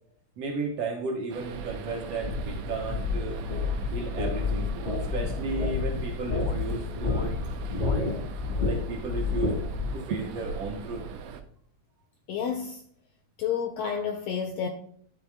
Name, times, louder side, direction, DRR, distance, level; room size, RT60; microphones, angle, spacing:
voice 1, 0.4-3.4 3.9-4.7 5.1-7.5 8.6-9.5 9.9-11.1, right 3 dB, 65° right, 1.6 m, -34 dB
sound 1, 1.3-11.4, right 6 dB, 85° right, 2.3 m, -40 dB
sound 2, 2.2-9.9, left 4 dB, 30° left, 0.8 m, -30 dB
voice 2, 12.3-12.8 13.4-14.7, left 7 dB, 75° left, 1.5 m, -30 dB
12.0 x 4.1 x 3.5 m
omnidirectional pair, 3.6 m